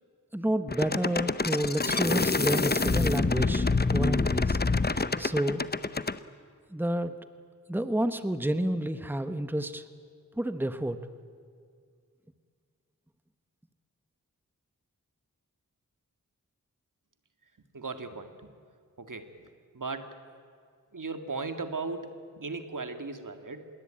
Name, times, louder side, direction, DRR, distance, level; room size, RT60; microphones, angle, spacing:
voice 1, 0.3-4.6 4.9-5.6 6.7-7.2 7.7-9.8 10.4-11.0, right 1 dB, 5° right, 10 dB, 1.2 m, -30 dB
sound 1, 0.7-6.2, left 3 dB, 30° left, 0.8 m, -26 dB
voice 2, 17.7-18.5 19.0-19.5 19.7-20.2 20.9-23.7, right 3 dB, 70° right, 8 dB, 2.0 m, -37 dB
26.5 x 22.0 x 8.9 m, 2.2 s
wide cardioid pair, 55°, 33 cm